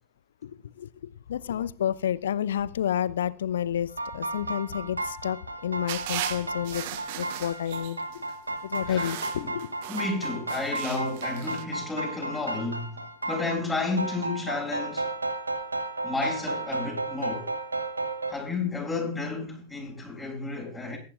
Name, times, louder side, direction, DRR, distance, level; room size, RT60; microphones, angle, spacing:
voice 1, 1.3-6.8 7.2-8.0 8.6-9.8, left 10 dB, 65° left, 0.7 m, -30 dB
sound 1, 3.9-18.3, right 2 dB, 80° right, 1.9 m, -33 dB
sound 2, 5.9-8.2 8.7-11.6, right 13 dB, 50° right, 1.1 m, -37 dB
voice 2, 8.9-9.5 9.9-15.1 16.0-17.5 18.3-21.0, left 3 dB, 5° left, 7.5 m, -32 dB
23.0 x 11.5 x 2.5 m
figure-of-eight pair, 90°, 0 cm